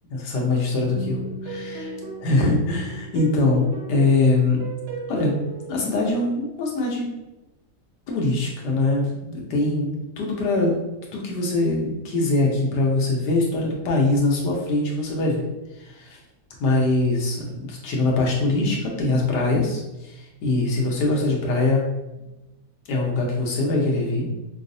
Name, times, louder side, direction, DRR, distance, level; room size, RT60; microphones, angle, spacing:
voice 1, 0.1-1.9 2.2-4.6 5.1-5.3 5.7-7.1 8.1-10.8 11.1-15.4 15.8-16.2 16.6-21.8 22.9-24.3, left 2 dB, 80° left, -1 dB, 1.4 m, -23 dB
sound 1, 0.9-6.2, right 3 dB, 60° right, 0.6 m, -36 dB
5.6 x 2.0 x 2.6 m, 0.99 s
omnidirectional pair, 1.8 m